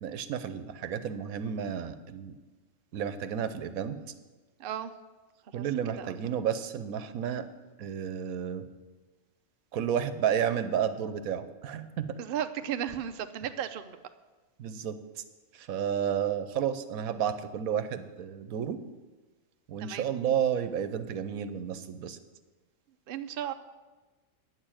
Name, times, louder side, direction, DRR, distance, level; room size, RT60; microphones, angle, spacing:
voice 1, 0.0-2.4 2.9-4.0 5.5-7.5 7.8-8.6 9.7-12.2 14.6-15.0 15.5-18.8 19.7-22.2, right 8 dB, 80° right, 11 dB, 1.2 m, -31 dB
voice 2, 4.6-4.9 5.5-5.6 6.0-6.2 12.2-14.0 19.8-20.1 23.1-23.5, right 9 dB, 55° right, 8 dB, 0.7 m, -35 dB
9.5 x 6.8 x 8.9 m, 1.2 s
omnidirectional pair, 1.5 m